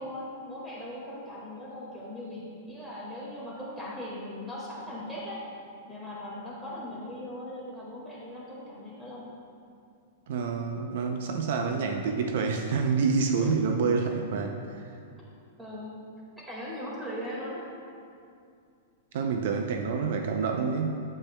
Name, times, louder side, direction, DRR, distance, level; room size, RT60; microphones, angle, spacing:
voice 1, 0.0-5.4 5.9-9.3 13.4-13.5 15.6-16.0 16.4-17.7, left 1 dB, 5° right, -6 dB, 1.8 m, -39 dB
voice 2, 10.3-14.8 19.1-21.0, right 5 dB, 60° right, 4 dB, 0.5 m, -28 dB
8.7 x 8.1 x 2.2 m, 2.4 s
hypercardioid pair, 150°, 0 cm